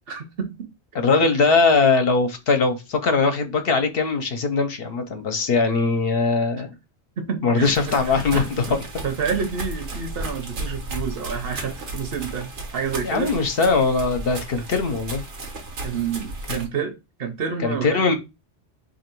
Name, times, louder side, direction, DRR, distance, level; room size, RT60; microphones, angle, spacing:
voice 1, 0.1-0.5 1.1-1.5 7.2-7.7 8.0-8.8 9.0-13.3 15.8-16.9 17.2-18.0, right 6 dB, 60° right, 0.9 m, -29 dB
voice 2, 0.9-6.7 7.4-8.8 13.0-15.2 16.5-16.6 17.6-18.1, left 4 dB, 65° left, 0.8 m, -21 dB
sound 1, 7.6-16.7, right 2 dB, 90° right, 1.2 m, -34 dB
2.9 x 2.7 x 4.4 m
omnidirectional pair, 1.2 m